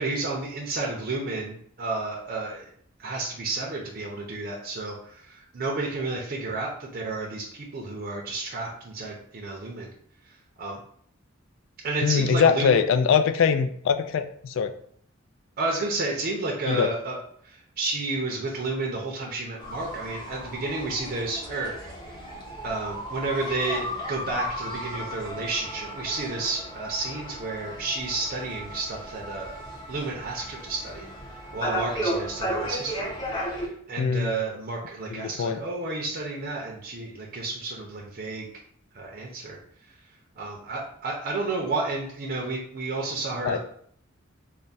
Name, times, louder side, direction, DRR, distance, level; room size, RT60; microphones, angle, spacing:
voice 1, 0.0-2.6 3.0-7.4 7.7-9.9 10.6-10.8 11.8-12.8 15.6-17.2 17.4-21.9 22.6-29.5 29.9-31.1 31.5-38.5 38.9-39.6 40.4-43.6, right 3 dB, 50° right, -2 dB, 0.6 m, -31 dB
voice 2, 12.0-14.7 16.7-16.9 34.0-34.3 35.1-35.6 43.4-43.6, left 6 dB, 65° left, 10 dB, 0.3 m, -22 dB
sound 1, 19.6-33.7, equal, 25° left, 0.9 m, -34 dB
3.4 x 2.1 x 4.0 m, 0.63 s
head